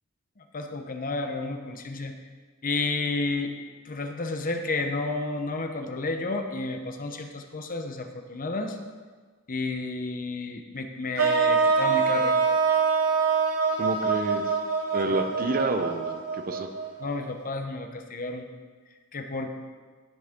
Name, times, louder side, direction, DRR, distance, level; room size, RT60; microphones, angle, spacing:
voice 1, 0.4-2.1 2.6-3.5 3.8-8.8 9.5-12.4 15.1-15.2 17.0-18.5 19.1-19.5, left 3 dB, 40° left, 5 dB, 0.9 m, -31 dB
sound 1, 11.2-17.2, right 5 dB, 90° right, 1.2 m, -25 dB
voice 2, 13.8-14.5 14.9-16.7, right 2 dB, 45° right, 7 dB, 0.7 m, -29 dB
17.5 x 6.2 x 3.7 m, 1.5 s
head